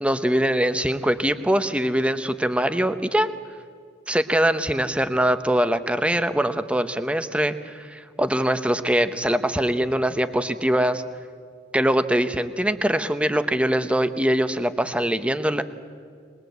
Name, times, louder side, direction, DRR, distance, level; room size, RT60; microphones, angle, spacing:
voice 1, 0.0-3.3 4.1-11.0 11.7-15.6, right 1 dB, 5° right, 10 dB, 0.8 m, -22 dB
22.0 x 21.0 x 8.1 m, 2.1 s
head